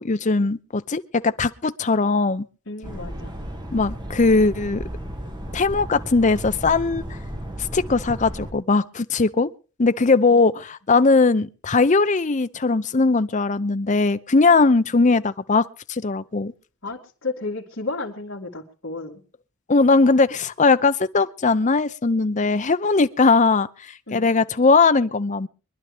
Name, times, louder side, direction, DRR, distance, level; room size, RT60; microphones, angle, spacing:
voice 1, 0.0-2.5 3.7-4.8 5.5-7.0 7.6-9.5 9.8-16.5 19.7-23.7 24.1-25.5, left 3 dB, 35° left, 0.6 m, -19 dB
voice 2, 2.7-3.4 10.3-10.4 16.8-19.2 24.1-24.3, left 3 dB, 60° left, 2.6 m, -32 dB
sound 1, 2.8-8.5, equal, 20° right, 1.8 m, -34 dB
24.0 x 11.5 x 3.4 m
head